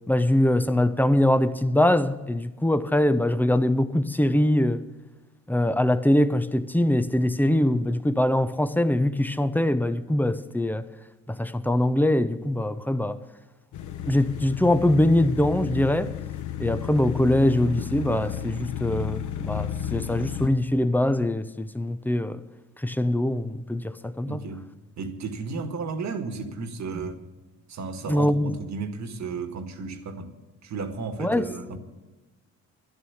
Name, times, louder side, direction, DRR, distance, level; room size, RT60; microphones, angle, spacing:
voice 1, 0.1-4.8 5.5-10.9 11.3-13.2 14.0-16.1 16.6-22.4 22.8-24.4 28.1-28.5 31.2-31.5, left 1 dB, 5° left, 0.7 m, -23 dB
sound 1, 13.7-20.5, left 10 dB, 75° left, 1.0 m, -33 dB
voice 2, 24.3-24.7 25.0-27.3 27.7-30.3 30.6-31.8, right 4 dB, 65° right, 1.8 m, -33 dB
12.5 x 11.0 x 7.2 m
cardioid pair, 90°, 30 cm